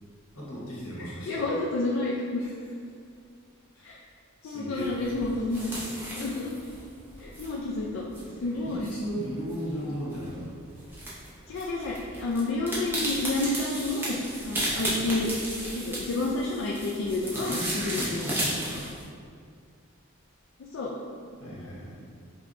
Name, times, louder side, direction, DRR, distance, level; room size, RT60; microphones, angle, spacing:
voice 1, 0.3-1.4 2.4-2.5 3.7-4.0 4.4-5.0 8.4-10.5 17.3-19.0 21.4-22.0, equal, 90° left, -7 dB, 1.2 m, -36 dB
voice 2, 1.3-2.4 3.8-4.0 4.4-5.8 6.2-6.5 7.2-8.0 8.4-8.9 11.5-14.2 14.4-15.3 15.7-18.3 20.7-20.9, left 2 dB, 60° left, -3 dB, 0.3 m, -30 dB
sound 1, 4.7-19.0, right 1 dB, 10° right, 0.6 m, -35 dB
5.1 x 2.2 x 2.5 m, 2.2 s
head